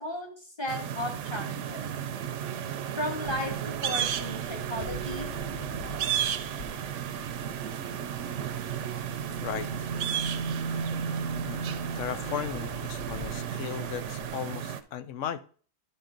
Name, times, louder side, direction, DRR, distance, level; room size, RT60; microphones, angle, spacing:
voice 1, 0.0-1.8 3.0-5.3, left 1 dB, 20° left, 2 dB, 1.5 m, -35 dB
sound 1, 0.7-14.8, right 8 dB, 75° right, 0.9 m, -33 dB
Fixed-wing aircraft airplane, 3.2-14.3, left 4 dB, 55° left, 0.7 m, -46 dB
voice 2, 9.4-9.9 11.4-15.4, left 9 dB, 80° left, 12 dB, 1.0 m, -36 dB
11.0 x 3.9 x 3.8 m, 0.42 s
omnidirectional pair, 1.3 m